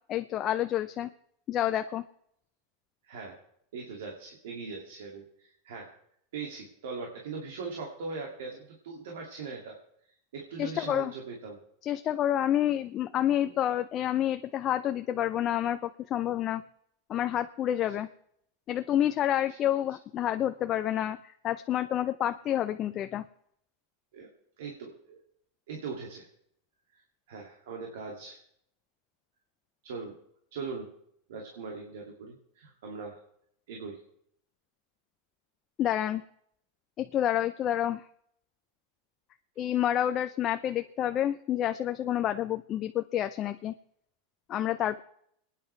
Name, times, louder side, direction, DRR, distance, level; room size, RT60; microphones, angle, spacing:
voice 1, 0.1-1.1 1.5-2.0 10.6-11.1 11.8-16.6 17.1-18.1 18.7-21.2 21.4-23.2 35.8-36.2 37.0-38.0 39.6-43.7 44.5-45.0, left 11 dB, 35° left, 9 dB, 0.6 m, -28 dB
voice 2, 3.0-3.4 3.7-5.9 6.3-9.8 10.0-11.6 13.1-13.6 19.5-19.6 24.1-24.3 24.6-25.2 25.7-26.3 26.9-27.0 27.3-28.4 29.8-30.2 30.5-30.9 31.3-33.2 33.7-34.0, right 4 dB, 80° right, 1 dB, 2.5 m, -40 dB
28.5 x 10.0 x 3.4 m, 0.71 s
supercardioid pair, 120°, 0 cm